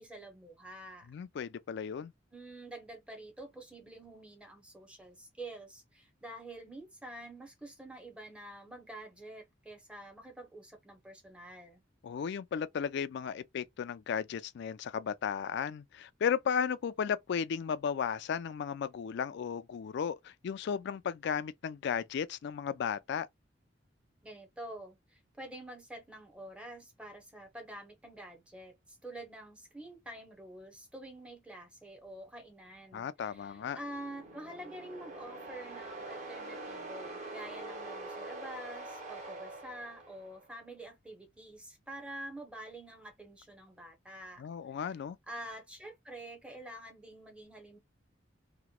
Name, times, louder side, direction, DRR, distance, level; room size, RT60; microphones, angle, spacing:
voice 1, 0.0-1.1 2.3-11.8 24.2-44.4 45.3-47.8, right 1 dB, 5° right, 0.7 m, -47 dB
voice 2, 1.1-2.1 12.0-23.3 32.9-33.8 44.4-45.2, left 7 dB, 65° left, 0.3 m, -35 dB
sound 1, 33.5-40.5, right 2 dB, 40° right, 1.0 m, -45 dB
2.9 x 2.1 x 2.2 m
head